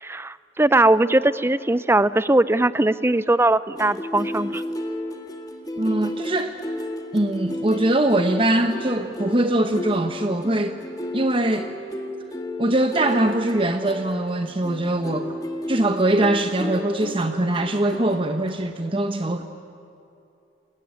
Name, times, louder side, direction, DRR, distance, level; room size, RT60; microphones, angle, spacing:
voice 1, 0.0-4.6, right 2 dB, 15° right, 16 dB, 0.5 m, -20 dB
sound 1, 3.7-18.5, left 1 dB, 20° left, 2.0 m, -33 dB
voice 2, 5.8-6.6 7.1-10.8 11.1-11.7 12.6-15.4 15.7-19.5, right 1 dB, 30° right, 7 dB, 0.9 m, -22 dB
29.0 x 20.5 x 9.0 m, 2.7 s
head